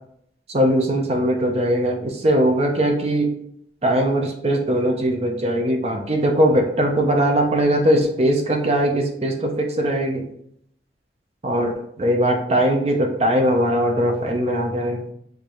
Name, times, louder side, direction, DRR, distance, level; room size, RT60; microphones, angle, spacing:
voice 1, 0.5-3.3 3.8-10.2 11.4-15.0, right 1 dB, 35° right, 2 dB, 0.6 m, -20 dB
6.5 x 2.6 x 2.9 m, 0.69 s
head